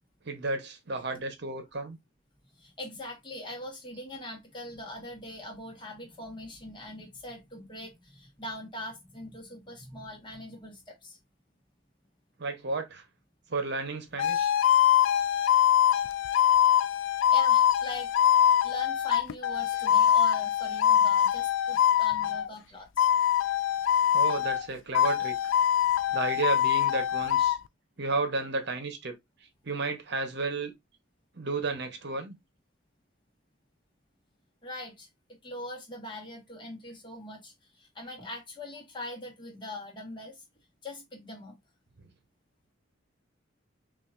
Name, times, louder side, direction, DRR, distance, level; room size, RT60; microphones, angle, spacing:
voice 1, 0.3-2.0 12.4-13.0 13.5-14.5 19.8-19.9 24.1-25.4 26.1-27.6 28.0-29.2 29.6-30.7 31.3-32.4, right 3 dB, 60° right, 0.9 m, -32 dB
voice 2, 2.6-11.2 17.3-18.1 18.6-23.1 34.6-35.1 35.4-40.4 40.8-41.6, left 1 dB, 25° left, 1.3 m, -42 dB
sound 1, 14.2-22.5 23.0-24.7 24.9-27.6, left 10 dB, 70° left, 0.3 m, -23 dB
5.6 x 2.5 x 2.4 m
head